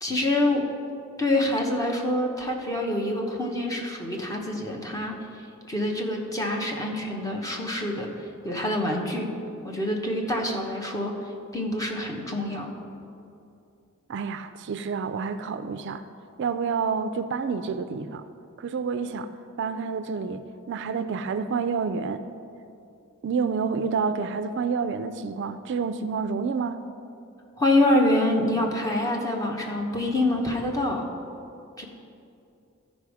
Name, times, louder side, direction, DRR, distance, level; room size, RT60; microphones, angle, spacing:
voice 1, 0.0-0.7 1.2-5.2 5.7-8.1 8.4-9.3 9.6-11.2 11.5-12.7 27.6-31.0 31.8-31.9, left 1 dB, 15° left, 0 dB, 1.0 m, -26 dB
voice 2, 14.1-16.0 16.4-18.2 18.6-19.3 19.6-22.2 23.2-26.9, right 5 dB, 55° right, 11 dB, 0.4 m, -29 dB
13.5 x 5.2 x 4.8 m, 2.6 s
head